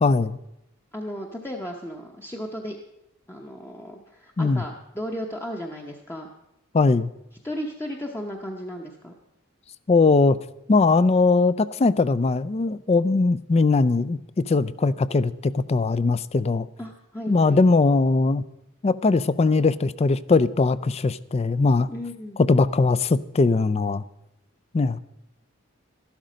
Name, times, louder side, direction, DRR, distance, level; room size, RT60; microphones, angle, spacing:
voice 1, 0.0-0.4 4.4-4.6 6.7-7.1 9.9-10.4 10.7-14.2 14.5-16.7 17.3-18.4 18.8-21.9 22.5-24.0 24.7-25.0, left 3 dB, 30° left, 17 dB, 0.4 m, -20 dB
voice 2, 0.9-2.8 3.3-6.3 7.4-9.1 16.8-17.6 21.9-22.4, equal, 10° left, 1 dB, 0.8 m, -35 dB
13.0 x 11.5 x 5.1 m, 0.84 s
head